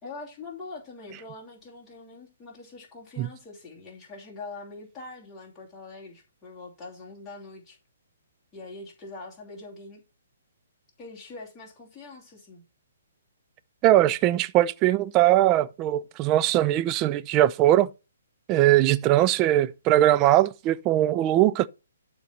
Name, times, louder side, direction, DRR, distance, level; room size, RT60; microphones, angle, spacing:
voice 1, 0.0-7.8 8.5-10.0 11.0-12.6, left 3 dB, 10° left, 2.8 m, -43 dB
voice 2, 13.8-17.9 18.5-21.7, right 14 dB, 25° right, 0.4 m, -21 dB
12.0 x 4.0 x 4.3 m
figure-of-eight pair, 130°, 0 cm